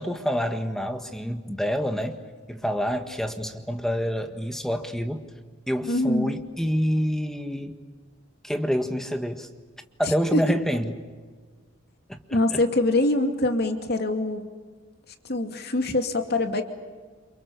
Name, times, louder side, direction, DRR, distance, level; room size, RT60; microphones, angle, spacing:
voice 1, 0.0-2.2 2.5-5.3 5.7-7.8 8.4-9.5 10.0-11.0 12.1-12.6, equal, ahead, 6 dB, 1.6 m, -27 dB
voice 2, 5.9-6.3 10.3-10.4 12.3-14.5 15.2-16.6, left 2 dB, 50° left, 5 dB, 2.6 m, -24 dB
30.0 x 27.5 x 7.0 m, 1.5 s
head